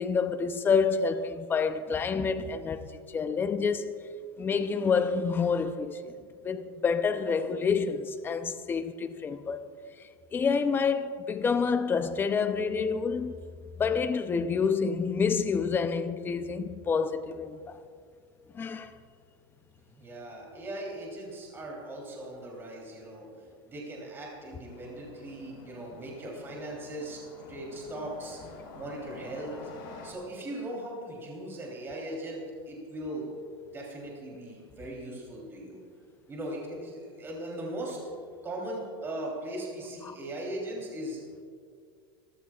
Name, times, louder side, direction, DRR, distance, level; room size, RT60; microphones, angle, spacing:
voice 1, 0.0-4.0 4.4-6.1 6.4-9.7 10.3-13.4 13.8-17.8 18.5-19.0 40.0-40.2, left 5 dB, 15° left, 0.6 m, -28 dB
voice 2, 19.9-23.3 23.6-27.2 27.5-29.6 30.0-32.4 32.7-33.3 33.7-35.8 36.3-38.0 38.4-41.2, right 1 dB, 20° right, 3.4 m, -39 dB
sound 1, 24.6-30.1, left 4 dB, 70° left, 4.3 m, -48 dB
27.5 x 14.5 x 2.4 m
supercardioid pair, 155°, 13 cm